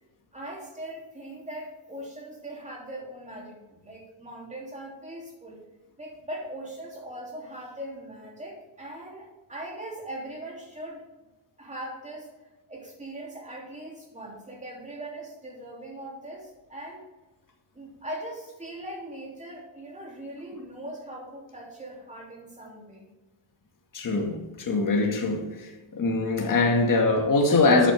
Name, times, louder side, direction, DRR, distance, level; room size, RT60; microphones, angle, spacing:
voice 1, 0.3-5.6 6.0-11.0 11.6-12.3 12.7-17.0 17.7-23.1, right 1 dB, 15° right, 3.1 m, -40 dB
voice 2, 23.9-25.5 25.9-27.9, left 3 dB, 45° left, 2.2 m, -22 dB
13.0 x 8.4 x 3.7 m
cardioid pair, 135°, 46 cm